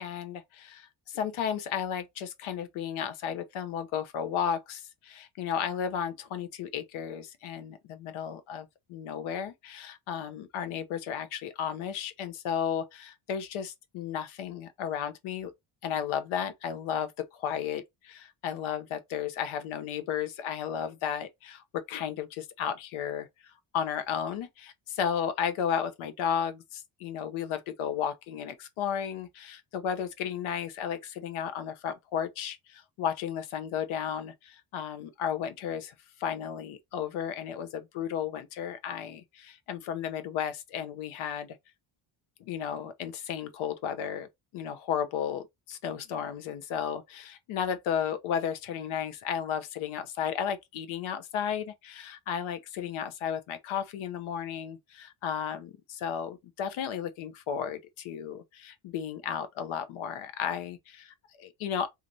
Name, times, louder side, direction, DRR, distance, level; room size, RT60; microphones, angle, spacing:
voice 1, 0.0-15.5 15.8-35.9 36.2-41.6 42.4-44.3 44.5-61.9, left 8 dB, 90° left, 0.7 m, -34 dB
2.6 x 2.4 x 3.0 m
cardioid pair, 160°, 47 cm